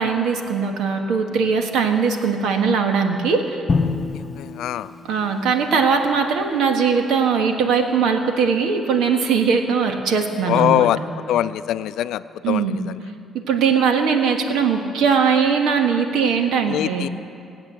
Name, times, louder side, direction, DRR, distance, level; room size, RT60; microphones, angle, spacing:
voice 1, 0.0-3.6 5.0-10.9 12.4-12.8 13.5-17.1, right 5 dB, 85° right, 4 dB, 1.5 m, -20 dB
Drum, 3.7-5.7, left 4 dB, 40° left, 0.9 m, -26 dB
voice 2, 4.1-4.9 10.5-11.0 11.3-12.9 16.7-17.1, left 12 dB, 85° left, 14 dB, 0.4 m, -22 dB
19.5 x 8.7 x 7.6 m, 2.5 s
cardioid pair, 90°, 0 cm